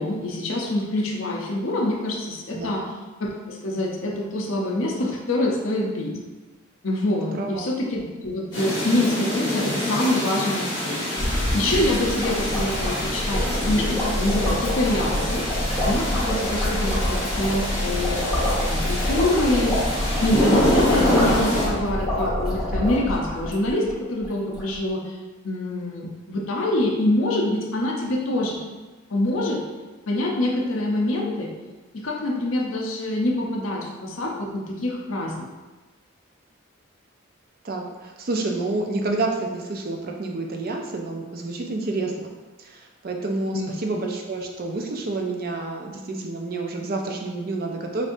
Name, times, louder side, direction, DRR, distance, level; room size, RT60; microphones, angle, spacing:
voice 1, 0.0-2.9 3.2-6.1 6.8-11.1 11.5-15.5 15.8-19.8 20.2-25.2 25.4-28.6 29.1-29.6 30.1-31.5 31.9-35.5 43.5-43.8, left 1 dB, 70° left, -1 dB, 0.7 m, -25 dB
voice 2, 7.3-7.7 16.5-17.2 37.6-42.3 42.6-48.1, right 2 dB, 45° right, 1 dB, 0.5 m, -29 dB
sound 1, 8.5-21.7, left 1 dB, 20° left, 1.4 m, -26 dB
sound 2, 11.2-23.9 24.2-24.3 24.5-24.8, left 1 dB, ahead, 1.4 m, -26 dB
5.2 x 2.6 x 2.6 m, 1.2 s
head